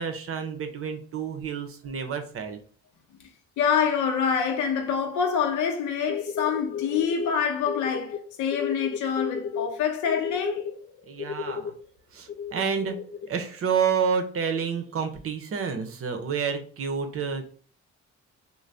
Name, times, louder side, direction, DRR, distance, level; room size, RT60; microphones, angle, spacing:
voice 1, 0.0-2.6 11.1-11.7 12.1-13.0 13.3-17.5, right 6 dB, 50° right, 0.7 m, -29 dB
voice 2, 3.6-10.7, left 7 dB, 75° left, 0.7 m, -26 dB
sound 1, 6.1-8.2 8.5-9.7 10.1-11.7 12.3-13.3, left 7 dB, 45° left, 0.4 m, -33 dB
2.6 x 2.2 x 3.3 m
cardioid pair, 90°, 30 cm